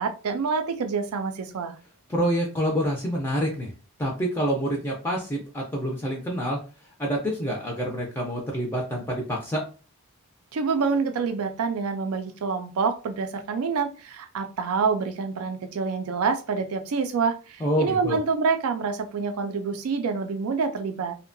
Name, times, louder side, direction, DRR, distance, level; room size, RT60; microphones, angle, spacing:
voice 1, 0.0-1.8 10.5-21.1, right 5 dB, 75° right, 7 dB, 0.4 m, -27 dB
voice 2, 2.1-3.7 4.0-6.6 7.0-9.6 17.6-18.2, equal, 10° left, -1 dB, 0.4 m, -27 dB
2.7 x 2.1 x 2.5 m, 0.35 s
head